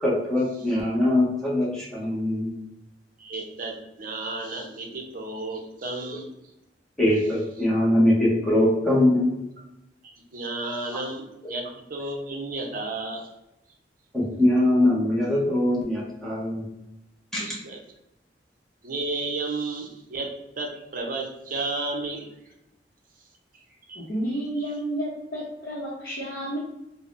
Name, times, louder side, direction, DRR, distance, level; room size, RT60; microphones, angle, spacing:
voice 1, 0.0-2.5 7.0-9.3 10.9-11.0 14.1-16.7 17.3-17.6, left 1 dB, 5° left, -6 dB, 0.7 m, -22 dB
voice 2, 3.2-6.3 10.0-13.3 17.4-17.8 18.8-20.3 20.6-22.3 23.9-24.0, right 2 dB, 50° right, 1 dB, 0.5 m, -32 dB
voice 3, 23.9-26.6, right 1 dB, 55° left, -7 dB, 0.7 m, -31 dB
3.5 x 2.0 x 2.4 m, 0.89 s
head